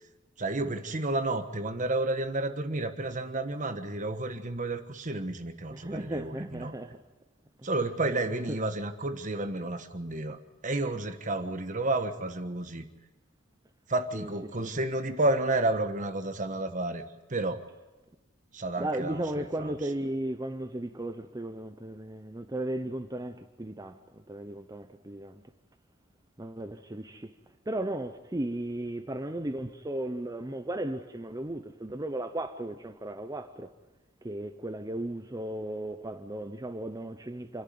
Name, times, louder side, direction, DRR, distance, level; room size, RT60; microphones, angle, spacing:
voice 1, 0.4-6.7 7.6-12.8 13.9-17.0 17.3-17.6 18.5-19.8, right 2 dB, 40° right, 1.4 m, -31 dB
voice 2, 5.7-7.0 7.6-7.7 8.5-8.6 14.1-14.3 14.6-14.7 18.8-25.4 26.4-27.3 27.7-33.7 34.2-37.6, right 1 dB, 20° right, 0.7 m, -35 dB
28.5 x 11.0 x 9.4 m
head